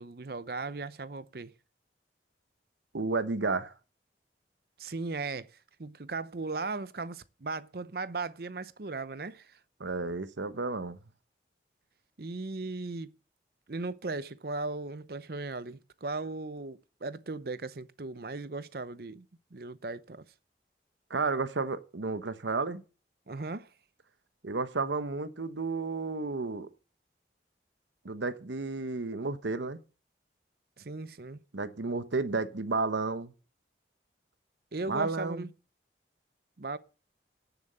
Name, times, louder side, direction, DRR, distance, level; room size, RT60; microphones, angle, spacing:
voice 1, 0.0-1.5 4.8-5.5 5.8-9.6 12.2-13.1 13.7-19.3 19.5-20.3 23.3-23.7 30.8-31.4 34.7-35.5 36.6-36.8, right 3 dB, 55° right, 0.7 m, -37 dB
voice 2, 2.9-3.7 9.8-11.0 21.1-22.8 24.4-26.7 28.0-29.8 31.5-33.3 34.9-35.5, right 3 dB, 90° right, 1.0 m, -32 dB
10.5 x 7.2 x 7.9 m
head